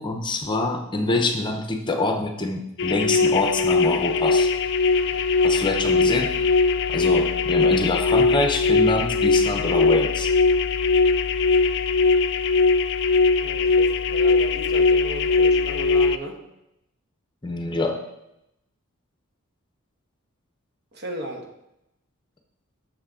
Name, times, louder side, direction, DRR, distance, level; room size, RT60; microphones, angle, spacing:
voice 1, 0.0-4.5 5.4-6.3 6.9-10.3 17.4-18.0, left 2 dB, 20° left, 4 dB, 0.7 m, -25 dB
sound 1, 2.8-16.2, left 4 dB, 55° left, 0.4 m, -20 dB
voice 2, 13.4-16.4 20.9-21.5, right 1 dB, 50° right, 3 dB, 1.2 m, -35 dB
6.6 x 6.3 x 4.9 m, 0.85 s
head